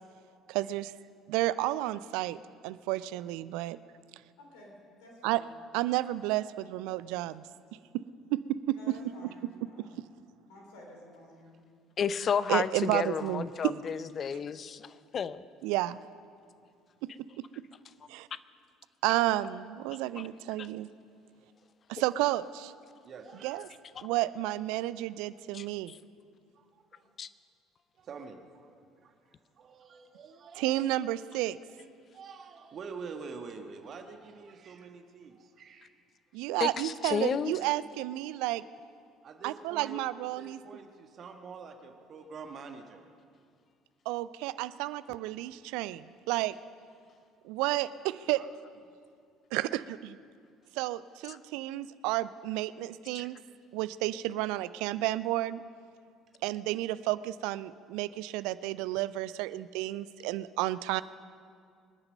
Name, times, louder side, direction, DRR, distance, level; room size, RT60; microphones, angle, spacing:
voice 1, 0.5-0.9 1.3-2.4 2.6-3.8 5.2-5.4 5.7-7.4 7.9-8.0 8.3-8.9 9.8-9.9 12.5-13.7 15.6-16.0 17.0-17.1 17.4-17.6 18.1-18.3 19.0-20.9 21.9-22.7 23.4-23.7 24.0-25.9 30.6-31.6 36.3-38.6 39.4-40.6 44.1-46.5 47.4-48.4 49.5-50.2 50.7-53.4 53.7-55.6 56.4-61.0, right 16 dB, 65° right, 16 dB, 0.4 m, -31 dB
voice 2, 4.4-5.5 8.7-10.0 10.5-11.5, left 1 dB, 65° left, 0 dB, 3.4 m, -52 dB
voice 3, 12.0-15.4 20.6-20.7 25.5-25.6 27.2-27.3 36.6-37.5 51.3-51.4, left 7 dB, 40° left, 15 dB, 0.6 m, -31 dB
voice 4, 21.4-22.0 23.0-23.6 26.5-27.1 28.0-30.7 32.1-35.9 39.2-40.0 40.3-43.0 47.9-48.0 48.4-48.5 53.2-53.3, right 5 dB, 45° right, 5 dB, 1.4 m, -47 dB
25.5 x 9.7 x 5.3 m, 2.2 s
figure-of-eight pair, 55°, 0 cm